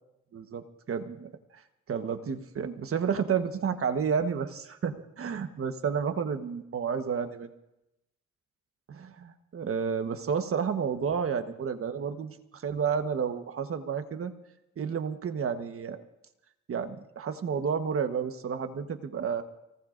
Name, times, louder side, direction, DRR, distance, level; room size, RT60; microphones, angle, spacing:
voice 1, 0.3-1.3 1.9-7.5 8.9-14.3 14.8-16.0 16.7-19.4, right 6 dB, 45° right, 8 dB, 1.3 m, -31 dB
30.0 x 18.0 x 2.6 m, 0.89 s
cardioid pair, 90°, 30 cm